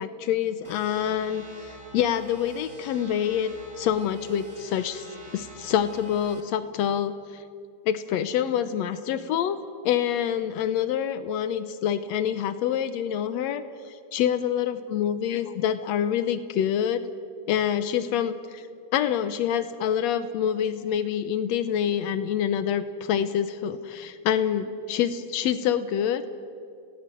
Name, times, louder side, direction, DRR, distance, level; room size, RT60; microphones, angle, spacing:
voice 1, 0.0-1.4 1.9-5.1 5.3-7.4 7.8-9.6 9.8-17.0 17.5-18.7 18.9-26.2, left 9 dB, 85° left, 12 dB, 1.5 m, -26 dB
sound 1, 0.6-6.4, right 1 dB, 40° right, 0.4 m, -46 dB
30.0 x 18.0 x 7.7 m, 2.4 s
omnidirectional pair, 4.1 m